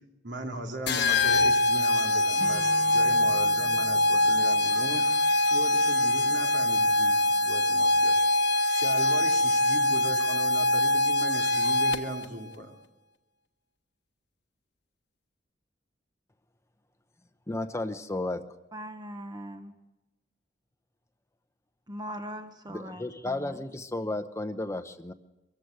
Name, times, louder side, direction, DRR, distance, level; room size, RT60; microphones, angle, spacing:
voice 1, 0.2-12.7, right 1 dB, 70° right, 2 dB, 3.1 m, -38 dB
sound 1, 0.9-12.3, left 1 dB, 65° left, 1.2 m, -24 dB
Acoustic guitar / Strum, 2.4-5.9, right 1 dB, 50° right, 2.7 m, -45 dB
voice 2, 17.5-18.4 22.7-25.1, left 2 dB, 15° left, 9 dB, 0.8 m, -33 dB
voice 3, 18.7-19.7 21.9-23.6, equal, 20° right, 6 dB, 1.1 m, -40 dB
24.0 x 14.5 x 7.9 m, 1.0 s
head